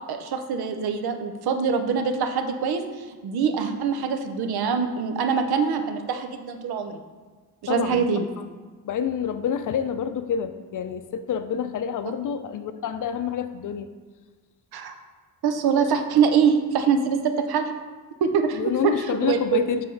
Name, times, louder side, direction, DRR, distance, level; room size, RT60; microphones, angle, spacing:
voice 1, 0.1-2.8 3.1-7.0 7.6-8.3 14.7-14.9 15.4-17.7 18.2-19.6, right 6 dB, 80° right, 7 dB, 0.7 m, -24 dB
voice 2, 7.7-8.1 8.4-8.5 8.8-13.9 18.5-19.8, left 7 dB, 55° left, 10 dB, 0.5 m, -28 dB
5.6 x 3.5 x 5.3 m, 1.4 s
cardioid pair, 90°, 37 cm